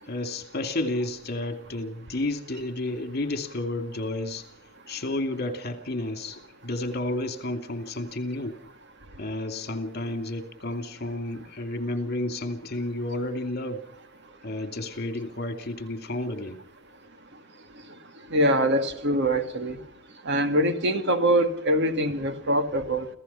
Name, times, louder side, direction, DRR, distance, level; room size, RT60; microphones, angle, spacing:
voice 1, 0.0-4.5 4.9-8.5 9.2-13.8 14.4-16.6, left 2 dB, 50° left, 7 dB, 2.7 m, -31 dB
voice 2, 18.3-19.8 20.3-23.1, right 1 dB, 60° right, 8 dB, 2.2 m, -23 dB
29.0 x 16.0 x 5.8 m, 0.70 s
head